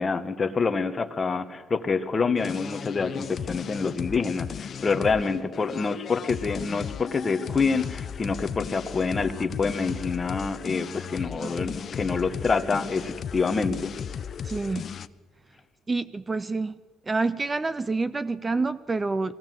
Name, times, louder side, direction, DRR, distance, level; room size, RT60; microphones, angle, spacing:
voice 1, 0.0-13.9, left 4 dB, 25° left, 9 dB, 1.2 m, -27 dB
sound 1, 2.4-15.1, left 7 dB, 45° left, 0.6 m, -36 dB
voice 2, 11.3-11.8 14.4-14.9 15.9-16.8 17.1-19.3, right 3 dB, 20° right, 15 dB, 0.5 m, -28 dB
22.0 x 16.5 x 7.7 m, 1.5 s
cardioid pair, 110°, 0 cm